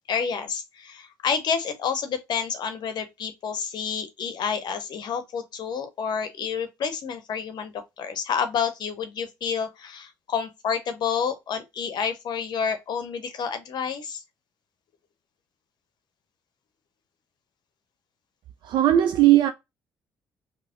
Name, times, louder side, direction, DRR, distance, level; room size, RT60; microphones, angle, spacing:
voice 1, 0.1-14.2, left 6 dB, 55° left, 0.7 m, -29 dB
voice 2, 18.6-19.5, right 13 dB, 65° right, 0.4 m, -18 dB
3.3 x 2.0 x 3.5 m
hypercardioid pair, 55°, 9 cm